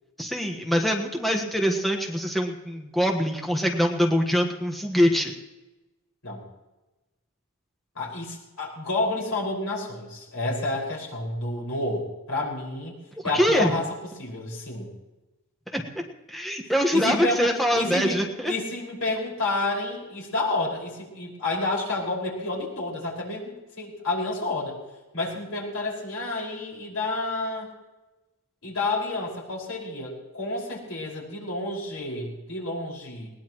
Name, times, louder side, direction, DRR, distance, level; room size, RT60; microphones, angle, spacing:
voice 1, 0.2-5.3 13.3-13.8 15.7-16.0 16.3-18.5, equal, ahead, 2 dB, 1.4 m, -24 dB
voice 2, 8.0-12.9 13.2-13.9 14.2-14.9 16.9-24.8 25.1-27.7 28.6-33.3, left 2 dB, 75° left, -3 dB, 5.5 m, -30 dB
21.0 x 19.0 x 3.1 m, 1.1 s
head